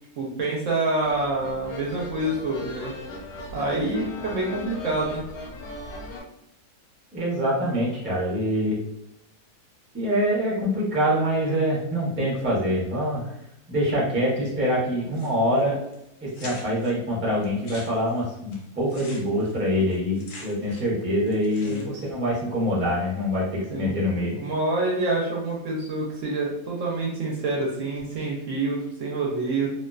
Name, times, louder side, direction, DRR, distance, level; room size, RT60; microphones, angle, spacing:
voice 1, 0.2-2.9 3.5-5.2 21.6-21.9 23.7-23.9 24.4-29.7, right 2 dB, 65° right, -2 dB, 0.8 m, -27 dB
sound 1, 1.0-6.2, left 2 dB, 90° left, 1.2 m, -38 dB
voice 2, 7.1-8.8 9.9-13.3 13.7-15.8 16.2-24.4, equal, 15° right, -6 dB, 0.4 m, -25 dB
sound 2, 15.1-15.6 15.9-16.0 16.3-16.9 17.4-21.0 21.2-22.1, left 3 dB, 65° left, 0.6 m, -44 dB
2.5 x 2.2 x 2.3 m, 0.82 s
omnidirectional pair, 1.6 m